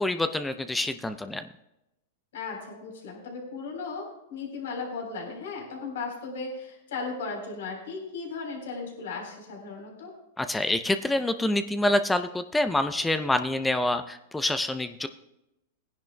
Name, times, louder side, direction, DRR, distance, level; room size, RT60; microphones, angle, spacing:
voice 1, 0.0-1.4 10.4-15.1, left 1 dB, 5° left, 9 dB, 0.5 m, -26 dB
voice 2, 2.3-4.0 4.3-10.1, left 4 dB, 80° left, 1 dB, 3.7 m, -36 dB
19.0 x 10.5 x 2.2 m, 0.89 s
hypercardioid pair, 130°, 0 cm